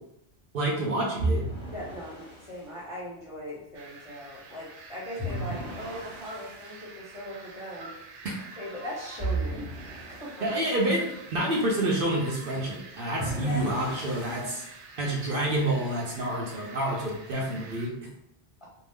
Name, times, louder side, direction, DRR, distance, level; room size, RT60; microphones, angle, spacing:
voice 1, 0.5-1.4 8.2-8.4 10.4-14.6 15.0-17.9, right 1 dB, 60° right, -2 dB, 0.8 m, -28 dB
sound 1, 1.2-2.6 5.2-6.7 9.2-10.6 13.2-14.7, right 2 dB, 10° right, 1.3 m, -34 dB
voice 2, 1.7-8.1 8.6-9.7 10.2-10.6 13.2-14.0, left 1 dB, 35° left, -6 dB, 0.6 m, -40 dB
sound 2, 3.7-17.9, right 4 dB, 90° right, 0.9 m, -47 dB
2.7 x 2.0 x 3.4 m, 0.79 s
omnidirectional pair, 1.1 m